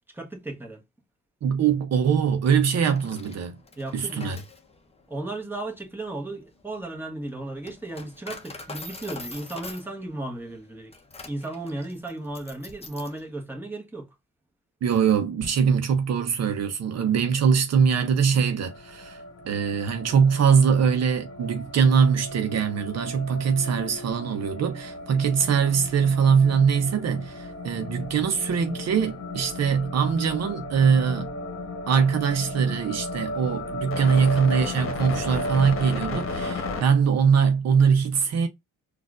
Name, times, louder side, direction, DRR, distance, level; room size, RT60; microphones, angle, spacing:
voice 1, 0.1-0.8 3.8-4.3 5.1-10.9 11.2-14.1, right 2 dB, 5° right, 1.3 m, -35 dB
voice 2, 1.4-3.6 3.9-4.4 14.8-31.3 31.9-38.5, right 6 dB, 60° right, 0.8 m, -22 dB
Coin (dropping), 2.7-13.2, left 3 dB, 20° left, 0.8 m, -44 dB
sound 1, 18.6-36.8, left 2 dB, 45° left, 1.2 m, -35 dB
4.1 x 2.6 x 2.4 m
cardioid pair, 90°, 30 cm